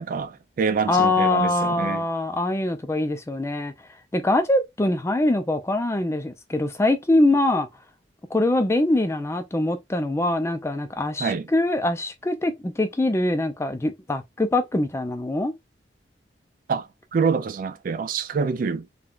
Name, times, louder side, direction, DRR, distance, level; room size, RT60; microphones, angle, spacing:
voice 1, 0.0-2.0 11.2-11.5 16.7-18.9, right 5 dB, 50° right, 0.3 m, -26 dB
voice 2, 0.9-3.7 4.1-7.7 8.3-15.5, left 2 dB, 15° left, 0.4 m, -23 dB
3.6 x 2.3 x 2.4 m
head